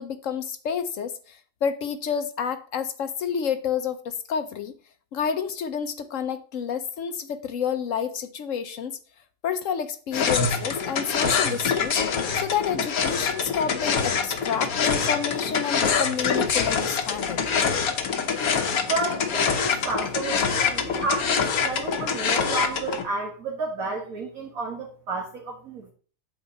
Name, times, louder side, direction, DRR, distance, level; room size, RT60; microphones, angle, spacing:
voice 1, 0.0-4.8 5.1-9.0 9.4-12.0 12.3-17.5, left 7 dB, 70° left, 1.0 m, -29 dB
sound 1, 10.1-23.0, left 6 dB, 90° left, 1.5 m, -25 dB
voice 2, 18.9-25.9, right 3 dB, 70° right, 2.0 m, -31 dB
9.0 x 7.1 x 4.1 m
omnidirectional pair, 1.5 m